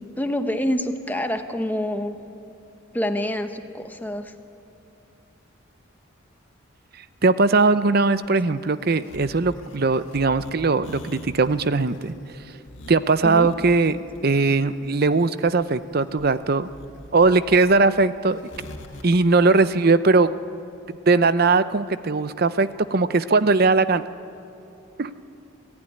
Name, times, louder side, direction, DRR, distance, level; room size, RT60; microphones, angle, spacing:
voice 1, 0.2-2.1 2.9-4.3 13.2-13.5, left 1 dB, 10° left, 7 dB, 0.9 m, -26 dB
voice 2, 7.2-12.2 12.9-16.7 17.1-18.5 19.0-20.3 20.9-24.0 25.0-25.1, right 3 dB, 45° right, 13 dB, 0.6 m, -20 dB
sound 1, 8.0-19.0, equal, 65° left, 2.2 m, -43 dB
26.5 x 15.0 x 10.0 m, 2.8 s
head